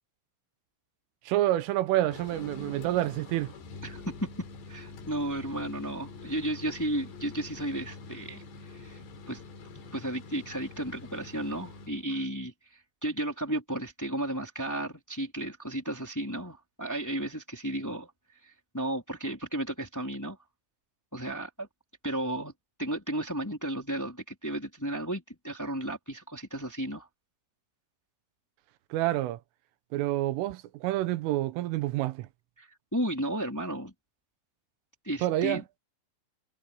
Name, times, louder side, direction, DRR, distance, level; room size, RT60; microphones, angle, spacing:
voice 1, 1.3-3.5 28.9-29.4 29.9-32.3 35.2-35.6, right 15 dB, 85° right, 3.6 m, -28 dB
sound 1, 2.0-12.0, left 3 dB, 60° left, 5.2 m, -45 dB
voice 2, 3.8-4.3 4.7-8.4 8.7-9.0 9.3-9.4 9.9-18.1 18.4-20.4 21.1-21.7 22.0-22.5 22.8-27.1 32.6-33.9 35.0-35.6, right 1 dB, 5° left, 2.6 m, -34 dB
omnidirectional pair, 5.7 m